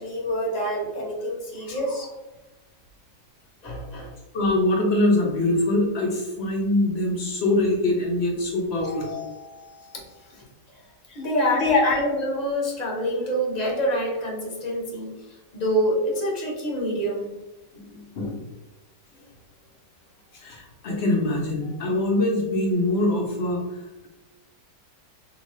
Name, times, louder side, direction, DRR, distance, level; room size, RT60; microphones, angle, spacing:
voice 1, 0.0-2.1 3.6-4.1 8.8-10.4 11.1-15.1 15.5-17.3, equal, 30° left, -3 dB, 0.8 m, -27 dB
voice 2, 4.3-9.1 11.1-11.2 11.6-11.8 17.7-18.4 20.3-24.1, left 2 dB, 90° left, -1 dB, 0.5 m, -23 dB
3.8 x 2.3 x 3.0 m, 1.1 s
omnidirectional pair, 1.9 m